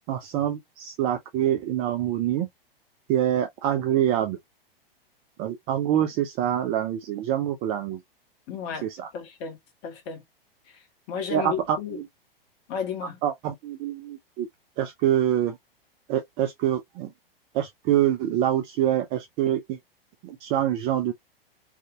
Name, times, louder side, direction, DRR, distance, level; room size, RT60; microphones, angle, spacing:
voice 1, 0.1-2.5 3.1-4.4 5.4-8.0 8.8-9.1 11.3-12.0 13.2-14.5 14.8-15.6 16.1-17.1 17.5-19.8 20.2-21.1, right 11 dB, 20° right, 0.3 m, -25 dB
voice 2, 8.5-9.6 9.8-10.2 11.1-12.0 12.7-13.2, left 7 dB, 35° left, 1.4 m, -33 dB
3.4 x 2.6 x 2.4 m
figure-of-eight pair, 105°, 30 cm